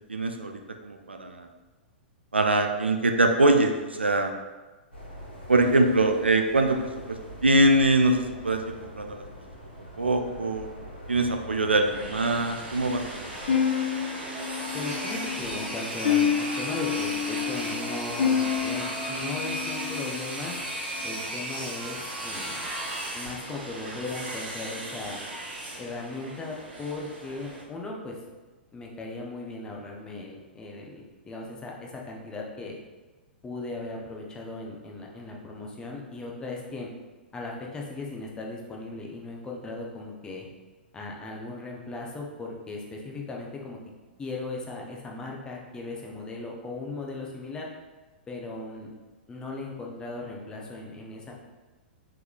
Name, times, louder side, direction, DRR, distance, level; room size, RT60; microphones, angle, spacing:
voice 1, 0.1-1.5 2.3-4.3 5.5-7.2 7.4-9.2 10.0-10.7 11.1-13.3, right 2 dB, 80° right, 4 dB, 0.4 m, -23 dB
sound 1, 4.9-13.6, equal, 90° left, 1.4 m, -44 dB
sound 2, 11.7-27.6, right 1 dB, 60° right, 1.4 m, -36 dB
sound 3, 13.5-20.6, left 8 dB, 50° left, 0.8 m, -29 dB
voice 2, 14.7-20.5 21.0-22.6 23.1-25.2 25.8-28.2 28.7-32.8 33.4-36.9 37.3-40.5 40.9-43.8 44.2-47.7 48.3-48.9 49.3-51.3, left 2 dB, 15° left, -1 dB, 0.6 m, -37 dB
4.5 x 3.6 x 2.4 m, 1.2 s
figure-of-eight pair, 105°, 6 cm